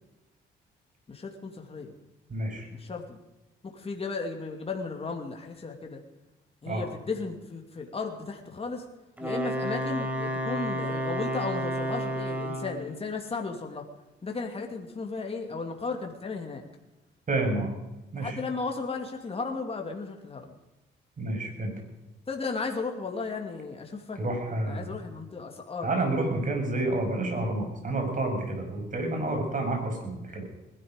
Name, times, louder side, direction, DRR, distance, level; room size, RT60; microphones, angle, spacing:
voice 1, 1.1-2.0 2.7-3.2 3.6-6.0 6.6-8.8 9.2-13.8 14.2-16.6 18.2-20.5 22.3-24.2 24.7-25.9, left 4 dB, 30° left, 2 dB, 2.6 m, -35 dB
voice 2, 2.3-2.7 6.7-6.9 17.3-17.7 18.1-18.4 21.2-21.7 24.2-25.0 25.8-30.4, right 2 dB, 40° right, 3 dB, 6.3 m, -29 dB
Wind instrument woodwind instrument, 9.2-12.9, equal, 10° right, 3.9 m, -31 dB
20.0 x 12.0 x 5.2 m, 1.0 s
cardioid pair, 90°, 20 cm